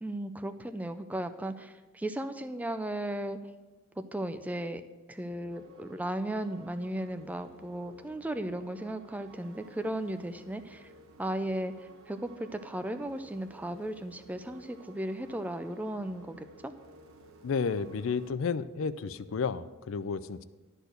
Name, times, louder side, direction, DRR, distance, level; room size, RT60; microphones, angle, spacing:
voice 1, 0.0-3.4 4.0-4.8 5.1-10.9 11.2-16.7, right 1 dB, 5° right, 9 dB, 0.4 m, -36 dB
sound 1, 5.3-18.3, right 2 dB, 85° right, 1.1 m, -55 dB
voice 2, 17.4-20.4, left 5 dB, 70° left, 15 dB, 0.4 m, -32 dB
11.5 x 4.5 x 8.0 m, 1.2 s
head